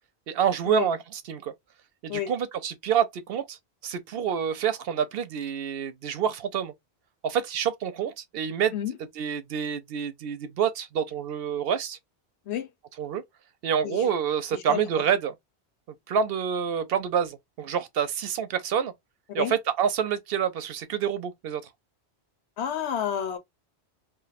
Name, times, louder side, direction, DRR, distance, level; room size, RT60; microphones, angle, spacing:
voice 1, 0.3-1.5 2.0-3.6 3.8-6.7 7.2-8.7 9.2-12.0 13.0-13.2 13.6-15.3 16.1-18.9 19.3-21.6, right 8 dB, 65° right, 0.7 m, -27 dB
voice 2, 14.5-14.9 19.4-19.6 22.6-23.4, left 10 dB, 80° left, 1.0 m, -30 dB
2.5 x 2.2 x 3.9 m
omnidirectional pair, 1.1 m